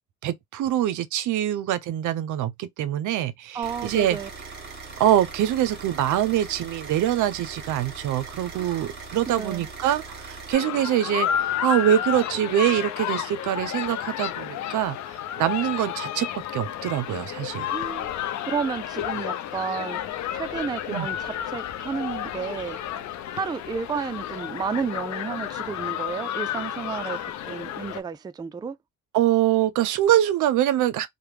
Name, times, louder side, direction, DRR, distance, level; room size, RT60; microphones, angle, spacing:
voice 1, 0.2-4.2 5.0-15.0 15.4-17.7 20.9-21.1 29.1-31.1, right 11 dB, 75° right, 0.5 m, -24 dB
voice 2, 3.5-4.3 8.5-8.9 9.3-9.7 17.7-18.1 18.4-20.0 20.3-22.8 23.3-27.2 27.4-28.8, right 6 dB, 15° right, 0.3 m, -31 dB
sound 1, 3.6-10.6, right 4 dB, 35° right, 1.4 m, -40 dB
sound 2, 10.5-28.0, left 10 dB, 65° left, 0.6 m, -31 dB
3.0 x 2.1 x 3.3 m
cardioid pair, 90°, 30 cm